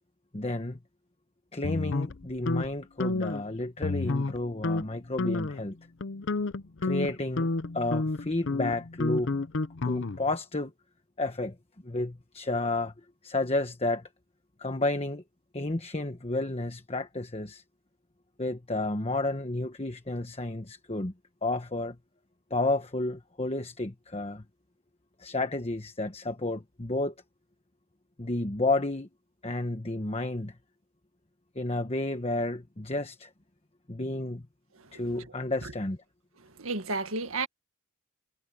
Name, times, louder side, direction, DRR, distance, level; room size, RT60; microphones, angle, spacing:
voice 1, 0.3-0.8 1.5-5.8 6.8-7.5 7.7-9.3 9.8-10.7 11.2-11.5 11.8-12.9 13.2-14.1 14.6-15.2 15.5-17.6 18.4-21.1 21.4-22.0 22.5-24.4 25.2-27.1 28.2-29.1 29.4-30.5 31.5-33.3 33.9-34.5 34.9-36.0, left 2 dB, 30° left, 1.2 m, -31 dB
sound 1, 1.6-2.7 3.0-3.4 3.8-4.4 4.6-4.8 5.2-5.6 6.0-10.4, left 3 dB, 60° left, 0.7 m, -30 dB
voice 2, 34.7-35.3 35.6-35.7 36.4-37.5, right 3 dB, 80° right, 1.8 m, -34 dB
head